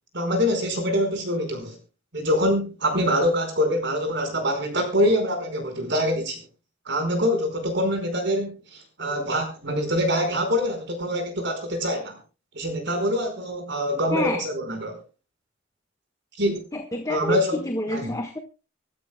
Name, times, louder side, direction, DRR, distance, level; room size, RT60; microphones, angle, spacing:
voice 1, 0.1-1.8 2.1-6.4 6.9-12.2 12.5-15.0 16.4-16.7 17.1-17.6 17.9-18.1, equal, 65° right, 6 dB, 4.8 m, -25 dB
voice 2, 14.1-14.4 16.7-18.4, left 1 dB, 20° left, 5 dB, 1.3 m, -28 dB
25.0 x 13.0 x 2.2 m, 0.31 s
head